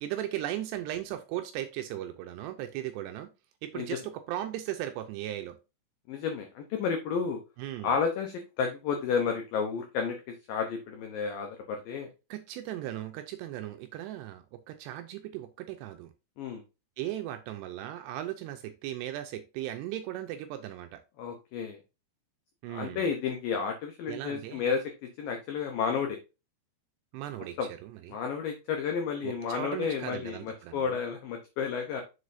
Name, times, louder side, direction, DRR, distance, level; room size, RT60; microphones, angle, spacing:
voice 1, 0.0-3.3 3.6-5.6 7.6-7.9 12.3-16.1 17.0-21.0 22.6-23.0 24.1-24.6 27.1-27.6 27.8-28.2 29.2-31.0, right 13 dB, 85° right, 2.5 m, -37 dB
voice 2, 6.1-7.4 7.8-12.1 16.4-16.6 21.2-21.8 22.7-26.2 27.6-27.7 28.1-32.0, left 6 dB, 85° left, 2.0 m, -31 dB
7.3 x 6.4 x 2.6 m
omnidirectional pair, 5.3 m